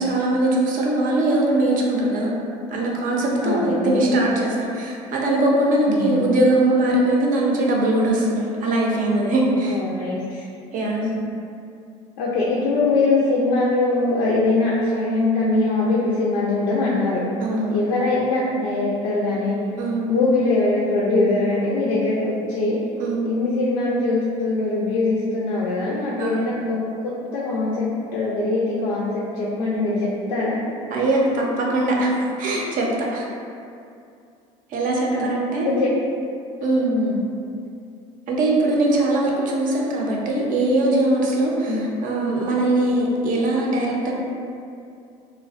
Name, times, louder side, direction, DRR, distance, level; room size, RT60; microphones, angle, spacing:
voice 1, 0.0-2.3 2.7-9.8 10.7-11.0 17.4-17.8 19.8-20.0 23.0-23.2 26.2-26.5 30.9-33.2 34.7-35.8 36.6-36.9 38.3-44.1, right 1 dB, 55° right, -2 dB, 0.5 m, -21 dB
voice 2, 3.4-4.1 5.9-6.2 9.7-10.4 11.0-11.2 12.2-17.3 17.7-19.6 20.1-22.8 23.2-30.6 35.1-35.3 35.6-35.9 36.8-37.2 41.7-41.9, left 2 dB, 85° left, -7 dB, 0.4 m, -22 dB
2.4 x 2.1 x 2.4 m, 2.5 s
supercardioid pair, 80°, 17 cm